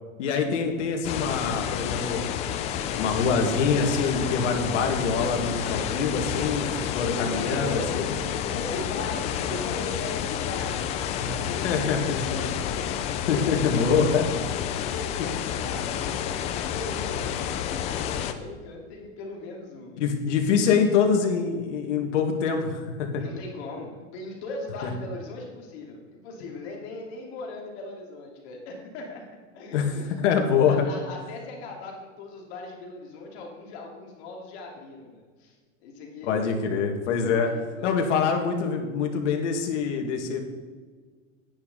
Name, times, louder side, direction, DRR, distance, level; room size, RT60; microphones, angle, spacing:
voice 1, 0.2-2.2 2.9-6.7 6.9-8.1 11.2-11.3 11.6-12.4 13.3-14.2 20.0-23.2 24.8-24.9 29.7-29.9 30.2-30.8 36.2-37.5 37.8-40.4, left 6 dB, 70° left, 3 dB, 2.2 m, -25 dB
sound 1, 1.0-18.3, left 9 dB, 20° left, 0.3 m, -30 dB
voice 2, 7.2-13.8 14.4-20.0 23.2-29.2 29.5-30.1 30.6-36.6 37.3-38.1, left 2 dB, 55° left, -1 dB, 2.8 m, -39 dB
10.5 x 10.5 x 4.1 m, 1.5 s
supercardioid pair, 145°, 37 cm